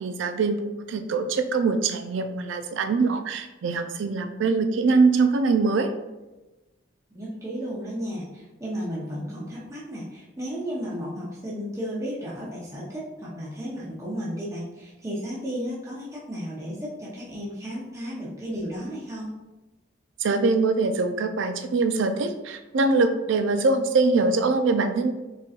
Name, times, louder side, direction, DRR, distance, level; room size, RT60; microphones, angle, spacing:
voice 1, 0.0-5.9 20.2-25.1, right 3 dB, 75° right, 8 dB, 0.4 m, -23 dB
voice 2, 7.1-19.3, equal, 15° right, -7 dB, 0.7 m, -33 dB
4.1 x 3.7 x 2.4 m, 1.1 s
head